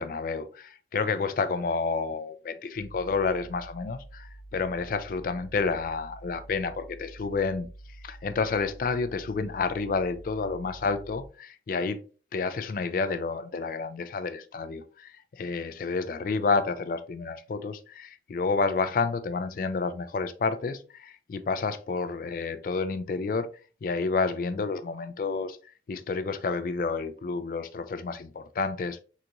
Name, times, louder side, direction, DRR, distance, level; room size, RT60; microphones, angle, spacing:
voice 1, 0.0-7.7 8.0-12.0 12.3-23.5 23.8-25.6 25.9-29.0, left 4 dB, 50° left, 0.3 m, -30 dB
sound 1, 2.7-11.3, right 1 dB, 35° right, 0.4 m, -47 dB
3.8 x 2.4 x 2.8 m
head